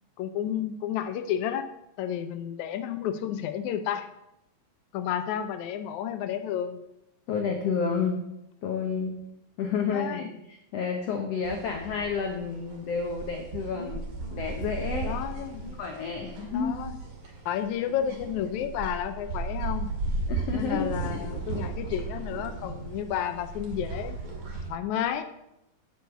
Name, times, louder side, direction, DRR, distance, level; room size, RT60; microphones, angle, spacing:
voice 1, 0.2-1.7 2.0-4.1 4.9-6.8 9.9-10.3 15.0-15.7 16.5-16.9 17.5-19.9 20.5-24.2 24.7-25.2, left 9 dB, 90° left, 9 dB, 1.7 m, -31 dB
voice 2, 7.3-8.2 8.6-9.2 9.6-15.2 15.8-16.7 20.3-21.3, left 5 dB, 70° left, 3 dB, 1.6 m, -30 dB
sound 1, 11.4-24.7, right 3 dB, 40° right, 2.5 m, -35 dB
8.2 x 8.0 x 7.0 m, 0.85 s
omnidirectional pair, 4.0 m